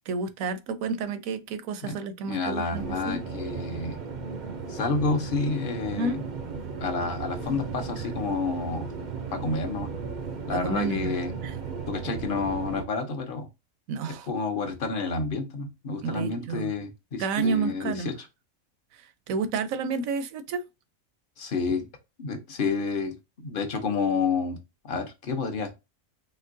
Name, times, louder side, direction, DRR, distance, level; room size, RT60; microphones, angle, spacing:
voice 1, 0.1-3.2 6.0-6.2 10.5-11.5 13.9-14.3 16.0-16.7 17.2-18.1 18.9-20.6, right 4 dB, 80° right, 1.0 m, -30 dB
voice 2, 2.3-4.0 4.7-6.2 6.8-8.9 9.3-9.9 10.5-11.3 11.9-13.5 14.3-18.1 21.4-21.9 22.2-24.6 24.8-25.7, left 4 dB, 45° left, 0.8 m, -29 dB
sound 1, 2.7-12.8, right 5 dB, 55° right, 0.5 m, -36 dB
4.4 x 3.0 x 2.5 m
omnidirectional pair, 1.4 m